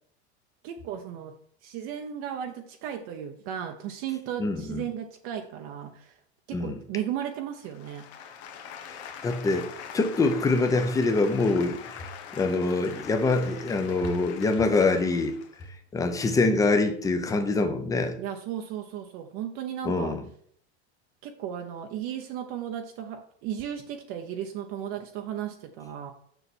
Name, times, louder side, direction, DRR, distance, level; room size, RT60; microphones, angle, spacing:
voice 1, 0.6-1.3 1.6-6.2 6.5-8.0 18.2-20.2 21.2-26.1, right 9 dB, 40° right, 0.8 m, -35 dB
voice 2, 4.4-4.8 6.5-6.8 8.9-15.4 15.9-18.2 19.8-20.2, left 3 dB, 10° left, 0.7 m, -25 dB
sound 1, 7.6-15.6, left 8 dB, 80° left, 1.4 m, -43 dB
6.9 x 5.8 x 4.3 m
supercardioid pair, 155°, 33 cm